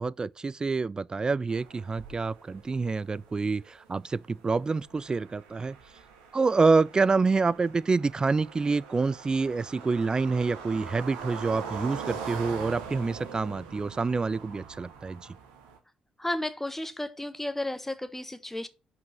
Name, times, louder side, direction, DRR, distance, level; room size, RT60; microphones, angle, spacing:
voice 1, 0.0-5.8 6.3-15.2, right 4 dB, 25° right, 0.3 m, -27 dB
sound 1, 1.5-15.8, right 6 dB, 75° right, 1.2 m, -43 dB
voice 2, 16.2-18.7, left 1 dB, 10° left, 1.1 m, -33 dB
5.4 x 5.2 x 5.1 m
hypercardioid pair, 45°, 3 cm